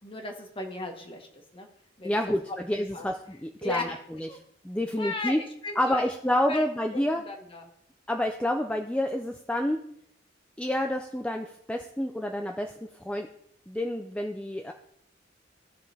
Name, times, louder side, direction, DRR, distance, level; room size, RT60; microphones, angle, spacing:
voice 1, 0.0-1.7 2.0-2.2 2.7-3.1 3.6-4.0 4.3-4.4 5.0-6.1 6.5-6.6 6.9-7.7, left 2 dB, 30° left, 3 dB, 1.4 m, -36 dB
voice 2, 2.0-3.9 4.2-4.3 4.6-5.4 5.8-7.2 8.1-9.8 10.6-12.7 13.0-13.3 13.7-14.7, left 1 dB, 5° left, 3 dB, 0.5 m, -28 dB
16.5 x 5.8 x 3.5 m, 0.73 s
head